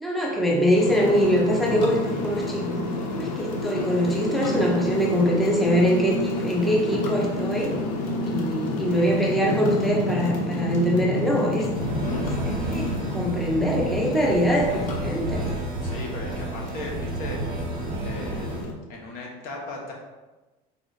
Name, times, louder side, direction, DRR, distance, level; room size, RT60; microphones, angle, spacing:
voice 1, 0.0-2.8 3.2-7.8 8.3-11.6 12.2-15.5, equal, ahead, -3 dB, 0.6 m, -23 dB
sound 1, 0.7-18.7, left 2 dB, 85° left, 0.8 m, -29 dB
sound 2, 11.7-18.6, right 2 dB, 30° right, 0.9 m, -31 dB
voice 2, 15.8-17.4 18.0-19.9, left 2 dB, 60° left, -1 dB, 1.1 m, -37 dB
3.9 x 3.0 x 3.9 m, 1.2 s
cardioid pair, 130°, 17 cm